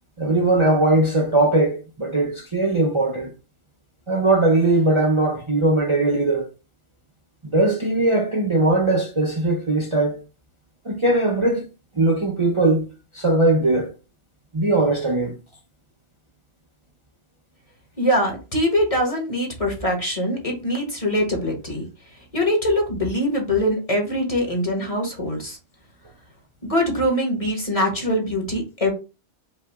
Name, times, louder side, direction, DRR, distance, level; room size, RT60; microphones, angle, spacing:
voice 1, 0.2-3.3 4.1-6.5 7.5-10.2 10.8-11.6 11.9-12.9 13.1-13.9 14.5-15.3, right 2 dB, 30° right, 0.8 m, -20 dB
voice 2, 18.0-21.8 22.3-25.6 26.6-28.9, equal, 30° left, 1.5 m, -23 dB
5.3 x 2.6 x 3.6 m
omnidirectional pair, 1.2 m